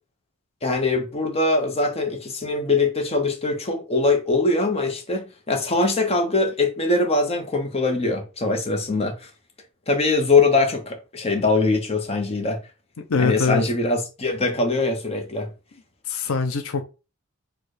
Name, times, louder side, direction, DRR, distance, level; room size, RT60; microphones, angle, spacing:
voice 1, 0.6-9.3 9.9-12.6 13.2-15.5, left 3 dB, 30° left, 0.9 m, -22 dB
voice 2, 13.0-13.6 16.1-16.8, left 4 dB, 80° left, 0.6 m, -23 dB
4.5 x 2.4 x 4.8 m
head